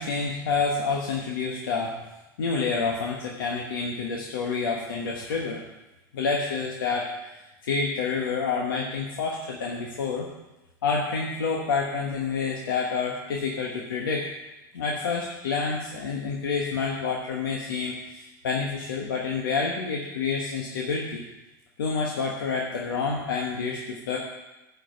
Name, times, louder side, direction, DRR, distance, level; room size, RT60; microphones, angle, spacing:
voice 1, 0.0-2.0 2.4-5.6 6.1-7.1 7.4-10.3 10.8-14.3 14.7-21.2 21.8-24.2, left 4 dB, 90° left, -1 dB, 1.3 m, -28 dB
10.0 x 5.2 x 7.8 m, 1.0 s
hypercardioid pair, 105°, 11 cm